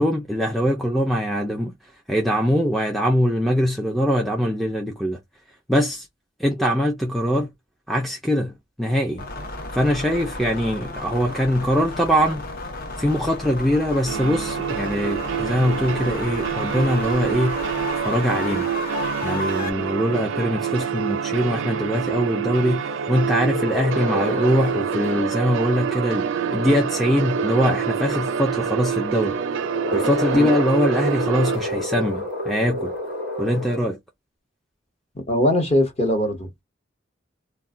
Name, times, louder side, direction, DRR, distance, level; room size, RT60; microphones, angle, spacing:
voice 1, 0.0-1.7 2.1-5.2 5.7-6.1 6.4-7.5 7.9-9.2 9.7-12.5 13.0-17.6 18.0-18.7 19.2-29.4 29.9-32.9 33.4-34.0, equal, ahead, 0.3 m, -22 dB
sound 1, 9.2-19.7, left 3 dB, 50° left, 0.6 m, -33 dB
sound 2, 14.1-31.6, right 8 dB, 80° right, 0.4 m, -27 dB
sound 3, 16.4-33.8, left 1 dB, 80° left, 1.3 m, -31 dB
voice 2, 35.3-36.6, left 1 dB, 30° left, 1.0 m, -21 dB
2.3 x 2.1 x 3.6 m
head